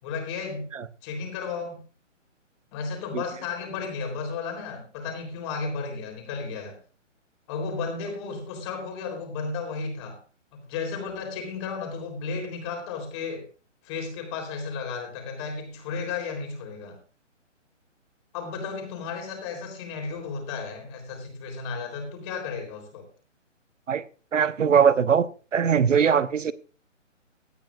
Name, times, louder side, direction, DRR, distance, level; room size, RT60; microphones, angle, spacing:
voice 1, 0.0-0.7 1.0-1.8 2.7-6.8 7.5-10.2 10.6-13.5 13.8-17.0 18.3-23.1, left 5 dB, 25° left, 3.6 m, -33 dB
voice 2, 24.3-25.3 25.5-26.5, right 7 dB, 80° right, 1.1 m, -21 dB
17.5 x 12.0 x 2.5 m
hypercardioid pair, 160°, 38 cm